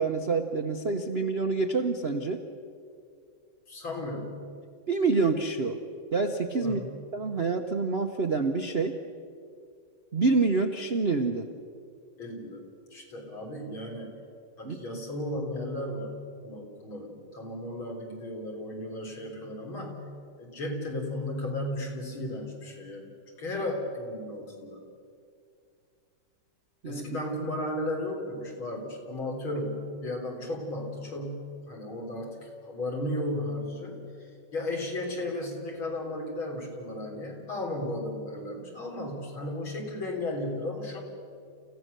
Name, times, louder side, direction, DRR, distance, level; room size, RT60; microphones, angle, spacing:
voice 1, 0.0-2.4 4.9-5.8 6.1-6.8 7.1-8.9 10.1-11.5 14.6-14.8 26.8-27.2, right 4 dB, 50° right, 4 dB, 0.8 m, -27 dB
voice 2, 3.7-4.4 6.6-7.1 12.2-12.6 12.9-14.2 14.6-20.1 20.4-23.1 23.4-24.8 26.9-41.0, left 1 dB, 70° left, 0 dB, 4.3 m, -35 dB
28.5 x 16.0 x 6.8 m, 2.3 s
omnidirectional pair, 2.3 m